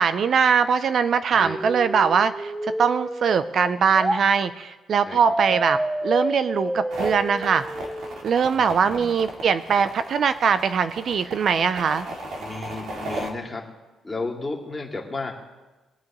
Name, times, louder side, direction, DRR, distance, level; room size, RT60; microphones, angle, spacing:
voice 1, 0.0-7.6 8.2-12.1, right 6 dB, 55° right, 12 dB, 0.5 m, -21 dB
voice 2, 1.3-1.7 5.0-5.2 5.5-5.7 8.5-9.1 12.4-13.6 14.0-15.3, left 3 dB, 15° left, -1 dB, 2.5 m, -33 dB
sound 1, 1.4-4.2 5.2-8.2, right 1 dB, 10° right, 0.6 m, -29 dB
sound 2, 6.9-13.3, right 1 dB, 75° right, 2.3 m, -35 dB
22.5 x 8.6 x 3.1 m, 1.2 s
cardioid pair, 90°, 0 cm